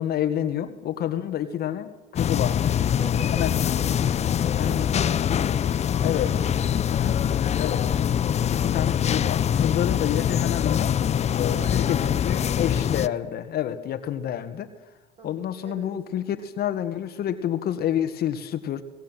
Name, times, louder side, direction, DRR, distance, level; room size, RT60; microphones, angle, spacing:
voice 1, 0.0-2.8 3.3-3.8 4.6-4.8 6.0-6.3 6.9-7.2 7.6-7.9 8.5-10.9 11.3-14.7 15.2-18.8, left 10 dB, 50° left, 8 dB, 1.7 m, -28 dB
sound 1, 2.2-13.1, left 9 dB, 35° left, 0.7 m, -24 dB
voice 2, 2.8-3.9 4.6-8.0 11.5-12.0 15.2-15.9, right 4 dB, 30° right, 3 dB, 6.3 m, -44 dB
23.0 x 17.5 x 9.2 m, 1.2 s
supercardioid pair, 95°, 20 cm